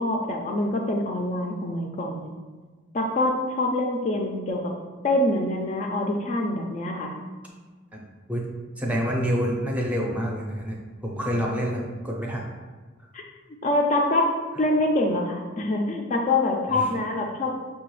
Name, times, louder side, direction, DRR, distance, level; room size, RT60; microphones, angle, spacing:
voice 1, 0.0-2.3 2.9-4.6 5.0-7.2 13.1-13.2 13.6-14.3 14.6-17.5, left 2 dB, 40° left, 0 dB, 0.4 m, -25 dB
voice 2, 8.8-12.5 16.7-16.9, equal, 10° right, -2 dB, 0.6 m, -27 dB
5.7 x 2.3 x 3.1 m, 1.3 s
head